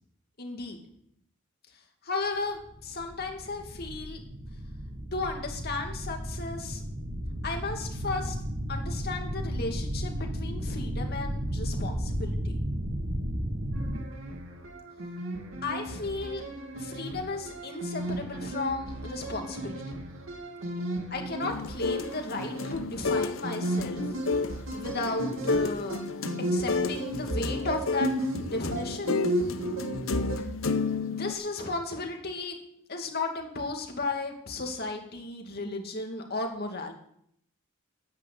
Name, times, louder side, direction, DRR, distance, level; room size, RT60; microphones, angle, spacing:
voice 1, 0.4-0.8 2.0-4.2 5.1-6.8 7.4-8.4 8.7-12.6 15.6-16.5 16.8-19.8 21.1-24.2 24.7-26.0 26.5-28.1 28.4-29.3 31.0-32.6 32.9-36.9, left 3 dB, 50° left, 3 dB, 2.6 m, -34 dB
sound 1, 2.6-14.0, equal, 55° right, 1.6 m, -33 dB
sound 2, 13.7-30.9, right 1 dB, 85° right, 2.3 m, -35 dB
sound 3, 21.4-31.3, left 4 dB, 90° left, 0.8 m, -32 dB
10.5 x 9.4 x 8.5 m, 0.70 s
head